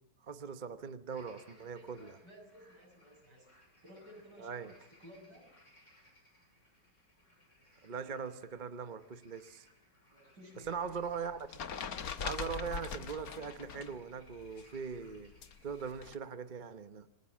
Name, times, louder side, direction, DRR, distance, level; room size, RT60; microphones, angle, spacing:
voice 1, 0.2-2.1 4.4-4.7 7.8-9.7 10.7-11.6 12.2-15.3 15.6-17.1, right 6 dB, 35° right, 11 dB, 1.0 m, -41 dB
sound 1, 1.1-15.9, left 1 dB, 45° left, 6.1 m, -64 dB
voice 2, 1.5-3.6 3.8-5.5 10.1-10.9, equal, 75° right, 1 dB, 8.3 m, -56 dB
sound 2, 10.7-14.0 14.3-16.2, left 6 dB, 60° left, 1.6 m, -42 dB
28.5 x 21.5 x 7.4 m, 0.72 s
omnidirectional pair, 1.8 m